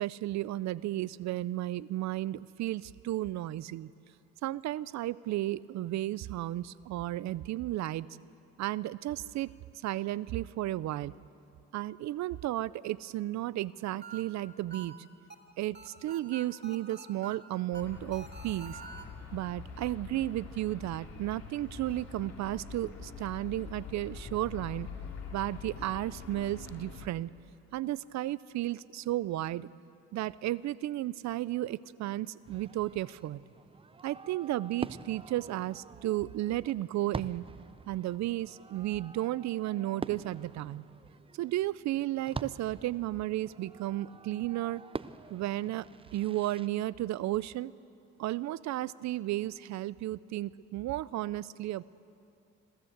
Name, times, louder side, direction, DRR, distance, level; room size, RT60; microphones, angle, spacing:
voice 1, 0.0-3.9 4.4-8.1 8.6-9.5 9.8-11.1 11.7-14.9 15.6-18.8 19.3-24.9 25.3-27.3 27.7-29.7 30.1-33.4 34.0-37.5 37.9-40.8 41.3-44.8 45.3-47.7 48.2-51.8, right 15 dB, 70° right, 19 dB, 0.5 m, -33 dB
sound 1, 13.7-19.0, right 4 dB, 35° right, 2.4 m, -48 dB
sound 2, 17.7-27.1, left 5 dB, 60° left, 2.9 m, -45 dB
Fireworks, 32.4-46.7, right 4 dB, 20° right, 0.5 m, -46 dB
26.0 x 13.5 x 8.0 m, 2.7 s
cardioid pair, 90°, 30 cm